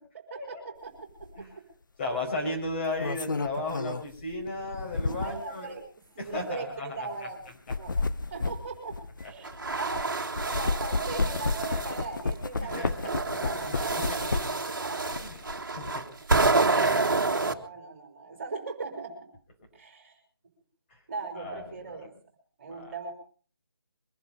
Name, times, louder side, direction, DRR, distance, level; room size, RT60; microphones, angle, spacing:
voice 1, 0.3-0.9 1.2-1.3 5.2-5.8 6.1-7.4 7.8-7.9 8.3-9.0 9.2-10.2 10.4-14.3 14.7-15.2 17.3-19.3 19.7-20.1 21.1-22.1 22.6-23.1, right 4 dB, 30° right, 4 dB, 4.2 m, -39 dB
sound 1, 1.2-1.4 2.7-5.5 6.2-6.4 7.5-10.0 10.4-14.7 15.1-15.9, left 3 dB, 55° left, 0.8 m, -32 dB
voice 2, 2.0-5.8 6.2-7.1 9.2-9.3 12.6-13.1 13.4-14.5 15.2-15.4 15.8-16.0 16.9-17.2 21.4-22.0 22.7-22.9, left 2 dB, 30° left, 0 dB, 5.3 m, -35 dB
sound 2, 9.4-12.1 12.7-17.5, right 3 dB, 55° right, 1.8 m, -28 dB
23.5 x 11.0 x 5.2 m, 0.42 s
figure-of-eight pair, 150°, 13 cm